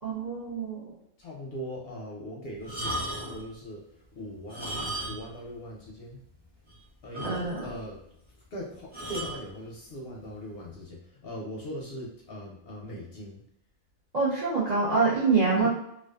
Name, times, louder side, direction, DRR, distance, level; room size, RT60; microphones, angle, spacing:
voice 1, 0.0-0.9 7.2-7.6 14.1-15.7, right 4 dB, 50° right, -7 dB, 0.5 m, -25 dB
voice 2, 1.2-6.2 7.0-8.0 8.5-13.4 15.6-15.7, left 1 dB, 60° left, -2 dB, 0.7 m, -40 dB
sound 1, 2.6-3.5 4.4-5.4 5.7-5.8 6.3-6.4 6.7-6.8 7.1-7.8 8.9-9.4 10.2-10.5, right 1 dB, 10° right, 0.7 m, -35 dB
2.5 x 2.3 x 2.2 m, 0.76 s
omnidirectional pair, 1.3 m